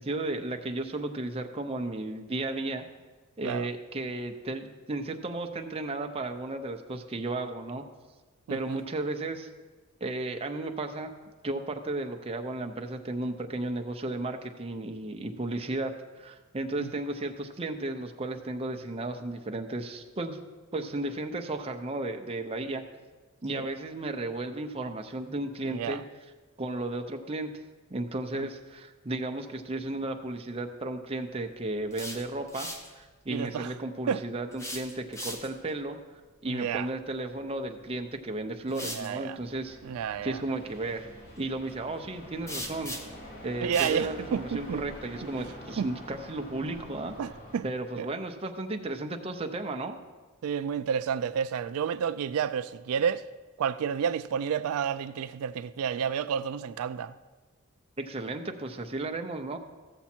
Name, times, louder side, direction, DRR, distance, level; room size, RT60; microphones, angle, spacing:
voice 1, 0.0-2.9 3.4-7.8 8.5-9.5 10.0-11.1 11.4-20.4 20.7-22.8 23.4-26.0 26.6-27.6 27.9-32.7 32.9-36.0 36.4-39.8 40.2-41.1 41.4-42.9 43.4-47.1 47.6-50.0 58.0-59.6, right 2 dB, 25° right, 0.7 m, -34 dB
voice 2, 8.5-8.8 16.8-16.9 23.5-23.7 25.6-26.0 28.3-28.5 33.3-33.7 34.1-34.2 36.4-36.9 38.7-39.4 39.8-40.4 43.6-44.8 45.8-45.9 47.2-47.6 48.0-48.1 50.4-53.2 53.6-57.1, right 7 dB, 85° right, 0.3 m, -30 dB
sound 1, 31.9-32.9 34.5-35.7 37.8-37.9 38.7-39.1 42.5-43.3 43.7-44.0, equal, 15° left, 0.9 m, -39 dB
sound 2, 39.4-47.6, equal, 45° left, 3.9 m, -46 dB
15.0 x 7.1 x 4.4 m
head